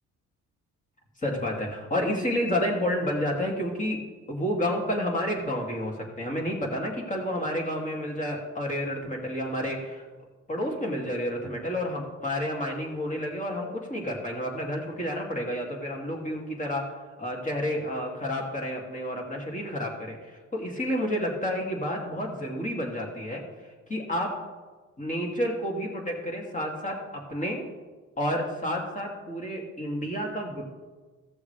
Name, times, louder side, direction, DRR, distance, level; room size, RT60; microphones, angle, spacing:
voice 1, 1.2-4.0 4.3-10.1 10.5-23.4 23.9-24.4 25.0-27.6 28.2-30.6, equal, 25° left, 0 dB, 2.5 m, -30 dB
16.0 x 7.1 x 3.4 m, 1.3 s
cardioid pair, 90°, 30 cm